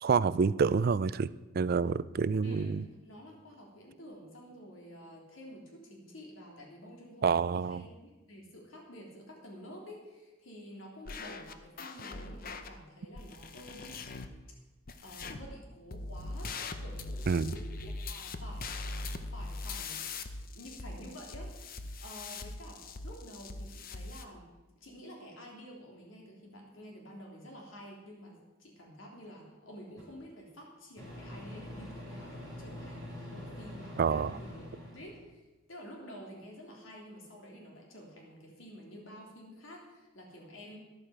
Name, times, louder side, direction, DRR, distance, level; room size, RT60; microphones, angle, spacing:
voice 1, 0.0-2.8 7.2-7.8 17.3-17.5 34.0-34.4, right 5 dB, 50° right, 17 dB, 0.4 m, -28 dB
voice 2, 2.4-14.0 15.0-16.5 16.8-18.8 19.3-24.5 24.7-34.7 34.9-35.4 35.7-40.8, equal, 85° left, -1 dB, 3.1 m, -50 dB
sound 1, 11.1-12.7 13.1-14.3 14.9-15.5 15.9-24.2, left 3 dB, 45° left, 0.8 m, -41 dB
Microwave oven, 30.0-30.1 31.0-35.2, left 1 dB, 20° left, 5.1 m, -45 dB
13.5 x 11.5 x 5.0 m, 1.1 s
head